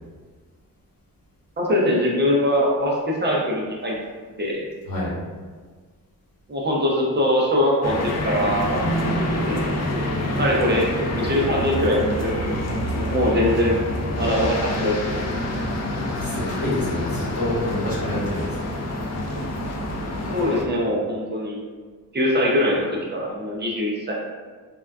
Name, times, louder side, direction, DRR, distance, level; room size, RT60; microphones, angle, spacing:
voice 1, 1.6-4.0 4.4-4.6 6.5-8.8 9.1-9.7 10.4-10.9 11.1-13.8 14.1-15.2 20.3-21.6 22.1-24.1, left 1 dB, 30° right, -3 dB, 0.4 m, -22 dB
sound 1, 7.8-20.6, left 1 dB, 50° left, 0.4 m, -26 dB
voice 2, 16.0-18.6, left 1 dB, 70° left, -7 dB, 1.1 m, -27 dB
3.5 x 2.2 x 2.2 m, 1.5 s
wide cardioid pair, 125°, 36 cm